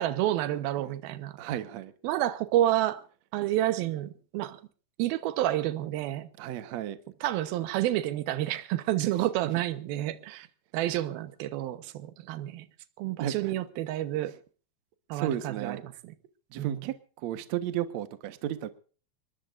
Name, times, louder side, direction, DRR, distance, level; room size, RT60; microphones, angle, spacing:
voice 1, 0.0-1.6 2.0-3.0 3.3-4.6 5.0-6.3 7.2-10.5 10.7-12.7 13.0-14.4 15.1-16.1 16.6-16.8, right 13 dB, 70° right, 2.6 m, -29 dB
voice 2, 1.4-1.9 6.4-7.0 13.2-13.5 15.1-15.8 16.5-18.7, right 11 dB, 85° right, 1.5 m, -33 dB
25.0 x 21.5 x 2.5 m
omnidirectional pair, 5.1 m